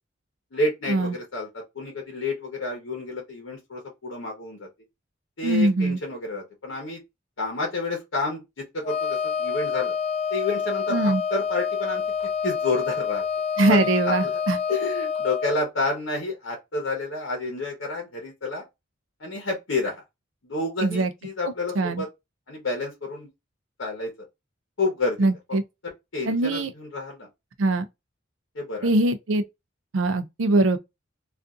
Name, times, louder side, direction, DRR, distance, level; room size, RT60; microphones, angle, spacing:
voice 1, 0.5-4.7 5.4-7.0 7.4-8.4 8.7-10.0 10.3-12.0 12.4-13.2 13.6-14.3 14.7-18.6 19.2-20.0 20.4-22.1 22.5-23.3 23.8-24.1 24.8-25.3 25.8-27.3 28.5-28.9, left 2 dB, 75° left, 0.8 m, -29 dB
voice 2, 5.4-6.0 10.9-11.2 13.6-14.6 20.8-21.1 21.8-22.0 25.2-25.6 26.3-26.7 27.6-27.9 28.8-29.4 29.9-30.8, right 2 dB, 90° right, 0.5 m, -22 dB
Wind instrument woodwind instrument, 8.8-15.6, left 6 dB, 30° left, 0.4 m, -27 dB
2.6 x 2.4 x 2.3 m
head